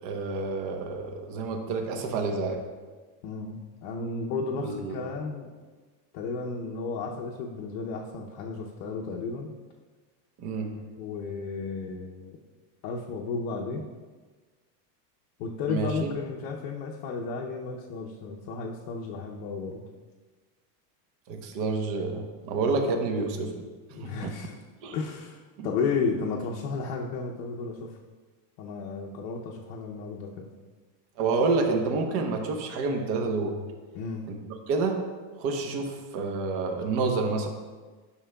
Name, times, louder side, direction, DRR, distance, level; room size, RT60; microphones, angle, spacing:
voice 1, 0.0-2.6 4.6-5.0 10.4-10.7 15.7-16.1 21.3-23.5 24.0-24.3 24.8-25.0 25.6-25.7 31.2-33.6 34.3-35.0 35.4-37.5, right 3 dB, 45° right, 4 dB, 1.0 m, -28 dB
voice 2, 3.2-5.5 6.1-9.5 11.0-12.4 12.8-13.8 15.4-19.8 23.9-24.5 24.9-27.9 28.6-30.5 33.9-34.3, left 4 dB, 50° left, -2 dB, 0.7 m, -33 dB
11.0 x 6.2 x 2.3 m, 1.4 s
cardioid pair, 165°, 48 cm